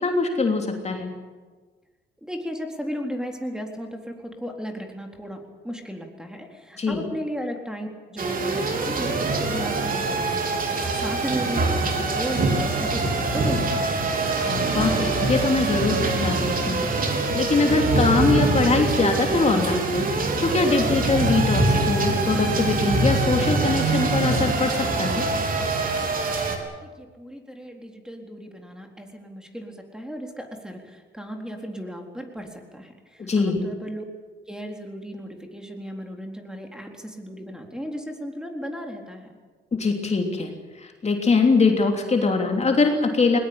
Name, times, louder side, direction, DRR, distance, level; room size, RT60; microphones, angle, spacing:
voice 1, 0.0-1.1 6.8-7.0 14.3-16.8 17.2-20.1 20.4-25.2 33.2-33.6 39.7-43.4, left 3 dB, 35° left, 3 dB, 3.2 m, -22 dB
voice 2, 2.2-9.2 9.5-13.9 26.8-34.0 34.5-39.3, equal, 5° right, 3 dB, 3.9 m, -35 dB
sound 1, 8.2-26.6, right 3 dB, 45° right, 4.0 m, -24 dB
20.5 x 20.5 x 8.9 m, 1.4 s
cardioid pair, 90°, 20 cm